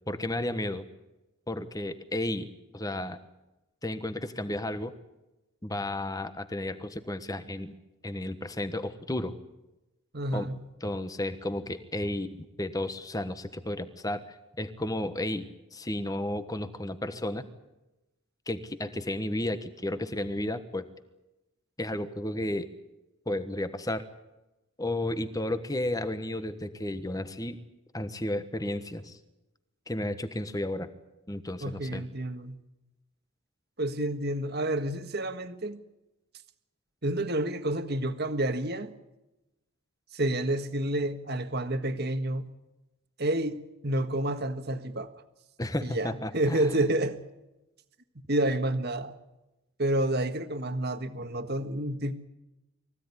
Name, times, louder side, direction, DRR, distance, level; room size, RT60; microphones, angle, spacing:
voice 1, 0.1-0.8 1.5-3.2 3.8-4.9 5.6-7.7 8.0-9.4 10.3-10.5 10.8-17.4 18.5-20.9 21.8-22.7 23.3-24.0 24.8-27.6 27.9-29.2 29.9-30.9 31.3-32.0 45.6-46.8, left 1 dB, 15° left, 1.3 m, -33 dB
voice 2, 10.1-10.6 31.6-32.6 33.8-35.8 37.0-38.9 40.1-42.5 43.2-45.1 45.8-47.2 48.3-49.1 49.8-52.1, right 1 dB, 45° right, 1.6 m, -29 dB
23.5 x 16.0 x 9.9 m
head